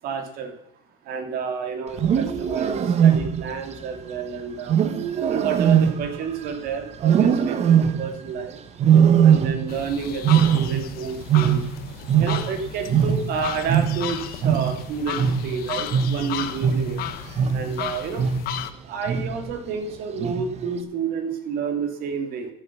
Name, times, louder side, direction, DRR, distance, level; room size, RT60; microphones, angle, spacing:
voice 1, 0.0-0.5 1.1-4.8 5.2-8.6 9.2-11.6 12.2-17.0 17.5-18.2 18.8-22.5, right 6 dB, 65° right, 7 dB, 2.7 m, -30 dB
Wild animals, 1.9-3.6 4.7-6.6 7.0-8.2 8.8-9.9 10.1-12.6 12.9-17.8 18.2-18.6 19.1-19.5 20.2-20.7, right 8 dB, 40° right, 1.2 m, -20 dB
sound 1, 9.7-18.7, left 12 dB, 65° left, 1.2 m, -34 dB
14.5 x 10.0 x 6.2 m, 0.75 s
cardioid pair, 140°, 17 cm